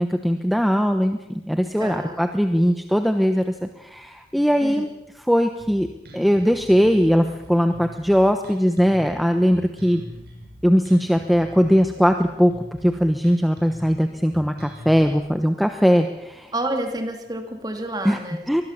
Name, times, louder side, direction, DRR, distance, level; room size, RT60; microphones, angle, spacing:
voice 1, 0.0-4.9 5.3-5.9 6.1-10.0 10.6-12.5 12.8-16.5 18.0-18.2 18.5-18.6, equal, ahead, 6 dB, 1.0 m, -20 dB
voice 2, 1.8-2.2 4.6-4.9 16.5-18.5, right 1 dB, 20° right, 5 dB, 2.6 m, -29 dB
Bass guitar, 5.6-15.2, equal, 65° right, 7.3 m, -43 dB
24.0 x 20.0 x 7.3 m, 0.89 s
head